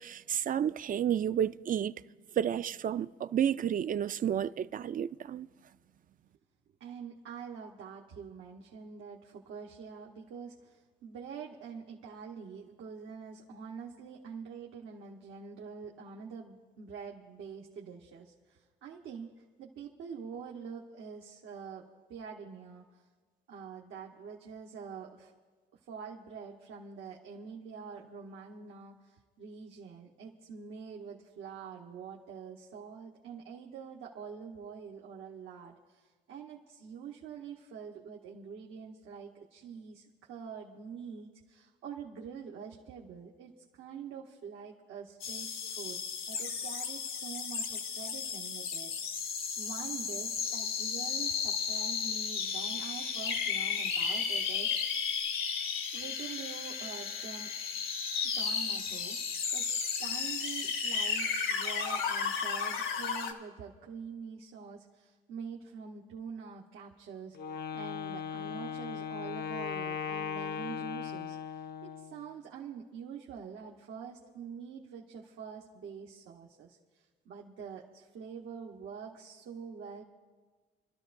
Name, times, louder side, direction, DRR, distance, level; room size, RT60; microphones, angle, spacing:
voice 1, 0.0-1.9 2.4-5.5, right 9 dB, 45° right, 0.4 m, -31 dB
voice 2, 6.8-23.0 23.5-25.3 25.8-43.5 43.8-46.0 46.3-49.3 49.6-55.1 55.9-57.5 58.4-59.2 59.5-59.7 60.0-67.4 67.7-80.0, right 6 dB, 80° right, 1.2 m, -45 dB
sound 1, 45.2-63.3, left 6 dB, 85° left, 1.4 m, -34 dB
Wind instrument woodwind instrument, 67.3-72.2, left 7 dB, 55° left, 0.6 m, -38 dB
28.5 x 12.5 x 2.6 m
cardioid pair, 90°, 20 cm